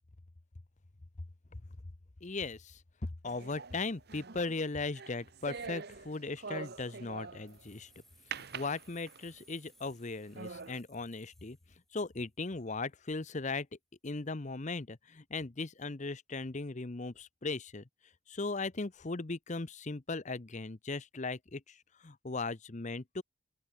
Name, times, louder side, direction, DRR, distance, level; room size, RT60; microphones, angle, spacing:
voice 1, 2.2-2.8 3.2-7.9 8.3-11.6 11.9-13.7 14.0-17.8 18.3-23.2, left 3 dB, 35° left, 0.8 m, -38 dB
sound 1, 3.2-7.6 8.3-9.4 9.9-10.0 10.3-10.8, right 5 dB, 50° right, 1.0 m, -45 dB
sound 2, 7.5-12.3, left 1 dB, ahead, 3.6 m, -64 dB
open air
head